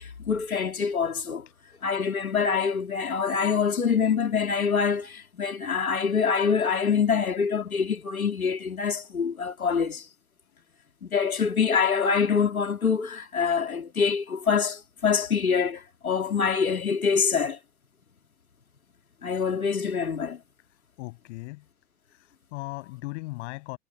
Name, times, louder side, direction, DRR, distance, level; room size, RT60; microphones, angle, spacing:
voice 1, 0.0-1.4 1.8-10.1 11.0-17.6 19.2-20.4, left 6 dB, 85° left, 2.9 m, -25 dB
voice 2, 20.7-21.7 22.1-23.8, left 24 dB, 55° left, 7.4 m, -38 dB
figure-of-eight pair, 85°, 42 cm